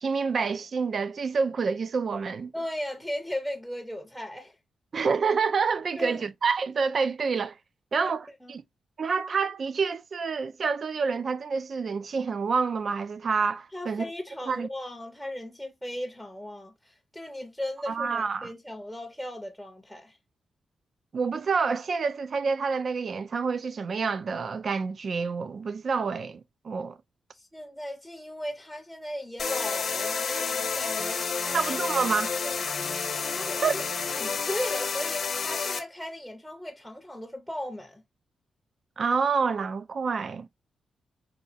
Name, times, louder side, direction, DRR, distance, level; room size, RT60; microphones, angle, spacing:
voice 1, 0.0-2.5 4.9-7.6 7.9-8.6 9.0-14.0 14.4-14.7 17.9-18.5 21.1-27.0 31.5-32.3 33.6-33.7 39.0-40.5, right 5 dB, 50° right, 0.3 m, -28 dB
voice 2, 2.5-4.5 6.0-6.2 7.9-8.1 8.4-8.6 13.7-20.1 27.3-31.8 32.4-32.5 33.4-33.8 34.1-38.0, left 1 dB, ahead, 0.6 m, -37 dB
sound 1, 29.4-35.8, left 5 dB, 60° left, 0.8 m, -30 dB
4.0 x 2.3 x 2.6 m
cardioid pair, 95°, 0 cm